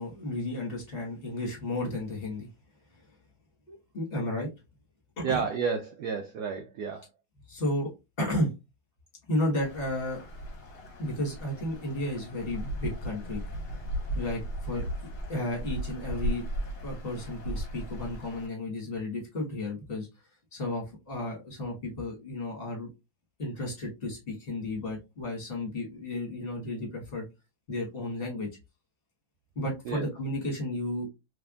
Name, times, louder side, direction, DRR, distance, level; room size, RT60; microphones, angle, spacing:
voice 1, 0.0-2.5 3.0-3.1 3.7-4.5 5.2-5.4 7.5-7.9 8.2-8.5 9.3-10.2 11.0-13.4 14.1-14.8 15.3-16.4 16.8-20.1 20.5-22.9 23.4-27.2 27.7-28.5 29.5-31.1, left 1 dB, 30° left, -1 dB, 1.5 m, -33 dB
voice 2, 5.2-7.1 29.9-30.1, right 6 dB, 85° right, 6 dB, 0.8 m, -31 dB
sound 1, 9.6-18.5, right 1 dB, 50° left, 1.2 m, -36 dB
3.6 x 3.2 x 2.4 m, 0.24 s
omnidirectional pair, 2.3 m